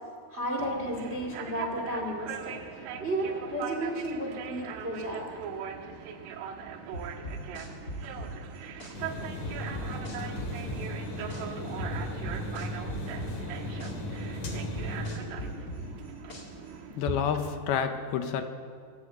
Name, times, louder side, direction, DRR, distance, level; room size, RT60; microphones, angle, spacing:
voice 1, 0.3-2.5 3.0-5.3 13.8-14.4 15.2-16.2, right 1 dB, 45° right, 2 dB, 0.7 m, -34 dB
sound 1, 0.6-17.4, right 7 dB, 85° right, 3.9 m, -40 dB
sound 2, 6.9-8.9 9.4-11.4 11.8-13.9 14.4-16.7, equal, 30° left, 1.9 m, -39 dB
sound 3, 8.9-15.2, left 1 dB, 45° left, 3.7 m, -36 dB
voice 2, 16.9-18.4, left 7 dB, 75° left, 7 dB, 2.4 m, -30 dB
24.0 x 12.5 x 8.9 m, 2.3 s
omnidirectional pair, 5.5 m